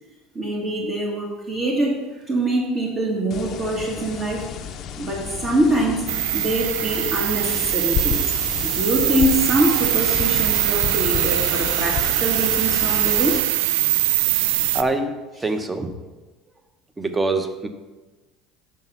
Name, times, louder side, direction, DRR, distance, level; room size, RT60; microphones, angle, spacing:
voice 1, 0.4-2.0 2.3-4.5 5.0-14.8, right 1 dB, 35° right, -2 dB, 1.8 m, -24 dB
sound 1, 3.3-13.4, left 8 dB, 50° left, 0.6 m, -31 dB
sound 2, 6.1-14.8, right 15 dB, 85° right, 0.3 m, -22 dB
voice 2, 14.7-15.9 17.0-17.7, right 3 dB, 15° right, 7 dB, 1.0 m, -24 dB
7.5 x 5.9 x 5.6 m, 1.2 s
supercardioid pair, 95°, 0 cm